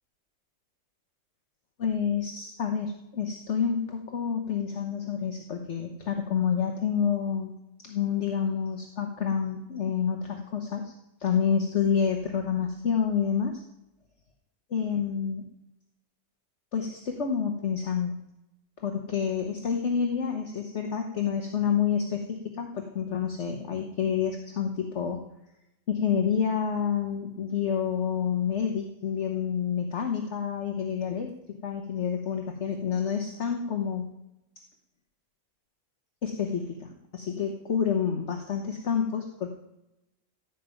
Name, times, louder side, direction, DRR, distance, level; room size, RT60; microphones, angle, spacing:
voice 1, 1.8-10.9 11.2-13.6 14.7-15.5 16.7-18.1 18.8-25.2 25.9-34.1 36.2-39.5, left 7 dB, 55° left, 4 dB, 1.4 m, -28 dB
16.0 x 5.8 x 9.0 m, 0.91 s
omnidirectional pair, 1.5 m